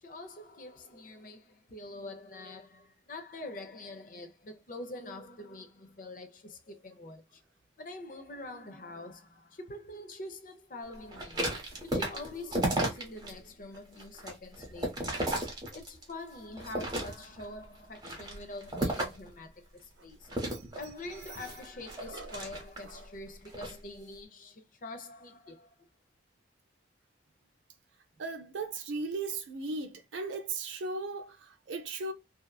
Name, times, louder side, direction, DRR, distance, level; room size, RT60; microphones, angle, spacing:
voice 1, 0.0-7.4 7.8-11.6 11.8-15.2 15.7-20.3 20.8-25.9, left 2 dB, 45° left, 0.6 m, -45 dB
sound 1, 11.1-13.3 13.7-16.1 16.6-17.4 17.9-19.3 20.3-23.0 23.4-23.8, right 1 dB, 20° right, 0.8 m, -34 dB
voice 2, 22.0-22.3 22.8-23.0 28.2-32.1, right 3 dB, 85° right, 0.6 m, -37 dB
2.8 x 2.3 x 2.2 m
head